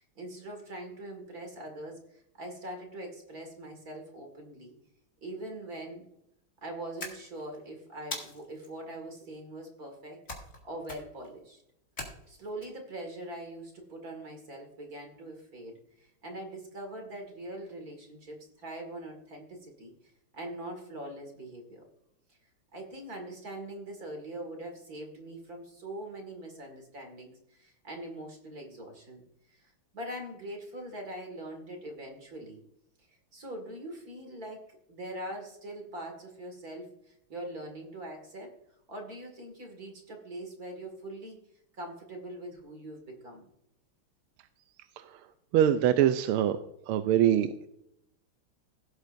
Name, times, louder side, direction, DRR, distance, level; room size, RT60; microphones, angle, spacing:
voice 1, 0.0-4.7 5.2-6.1 6.6-10.2 10.6-11.6 12.3-19.9 20.3-21.8 22.3-22.4 22.7-29.2 29.5-32.6 33.1-38.5 38.9-41.4 41.7-43.4, right 1 dB, 45° right, 3 dB, 2.4 m, -42 dB
sound 1, 7.0-7.6 8.1-8.7 10.3-10.6 10.8-11.3 12.0-12.7, left 2 dB, 35° left, 2.2 m, -40 dB
voice 2, 45.5-46.6 46.9-47.5, right 10 dB, 90° right, 10 dB, 1.5 m, -23 dB
17.0 x 8.0 x 2.6 m, 0.76 s
omnidirectional pair, 2.3 m